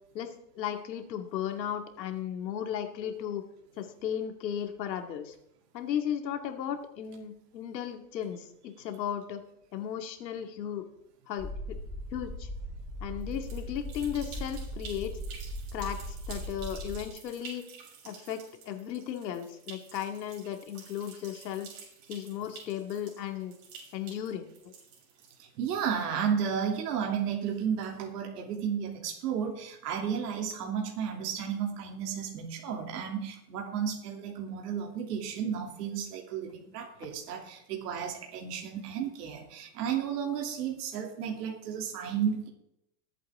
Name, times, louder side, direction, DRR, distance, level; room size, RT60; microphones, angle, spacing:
voice 1, 0.1-3.4 3.8-5.3 5.7-9.4 9.7-10.9 11.3-11.8 12.1-12.5 13.0-15.1 15.7-17.6 18.0-21.7 22.1-23.6 23.9-24.5, left 9 dB, 85° left, 6 dB, 2.3 m, -35 dB
sound 1, 11.4-17.1, equal, ahead, 0.8 m, -39 dB
sound 2, 13.2-25.7, right 6 dB, 50° right, 6.6 m, -50 dB
voice 2, 25.4-42.5, right 7 dB, 70° right, 0 dB, 3.1 m, -33 dB
21.5 x 8.4 x 3.7 m, 0.76 s
supercardioid pair, 155°, 49 cm